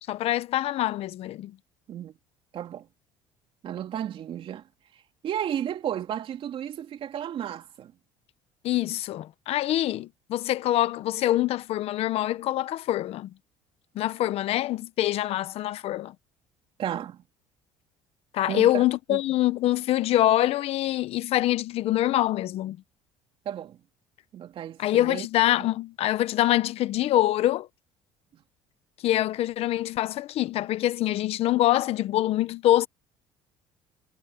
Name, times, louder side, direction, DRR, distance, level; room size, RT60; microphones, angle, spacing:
voice 1, 0.1-1.5 8.6-13.3 13.9-16.1 18.3-22.8 24.8-27.7 29.0-32.9, left 14 dB, 60° left, 1.0 m, -25 dB
voice 2, 2.5-2.9 3.6-4.6 5.2-7.9 16.8-17.2 18.5-18.8 19.1-19.2 23.4-23.8 24.3-25.3 25.6-25.7 28.3-28.4, right 10 dB, 50° right, 2.8 m, -33 dB
cardioid pair, 115°, 12 cm